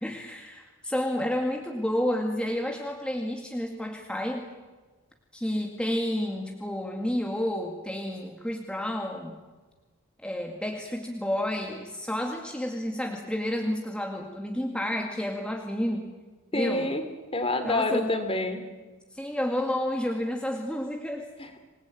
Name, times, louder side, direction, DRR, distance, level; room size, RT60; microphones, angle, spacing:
voice 1, 0.0-4.5 5.3-9.4 10.2-16.1 16.5-16.9 17.6-18.1 19.1-21.3, left 1 dB, 5° left, 1 dB, 2.2 m, -30 dB
voice 2, 16.5-17.0 17.3-18.6 21.4-21.6, left 2 dB, 25° left, 8 dB, 2.9 m, -27 dB
27.0 x 19.5 x 9.2 m, 1.3 s
head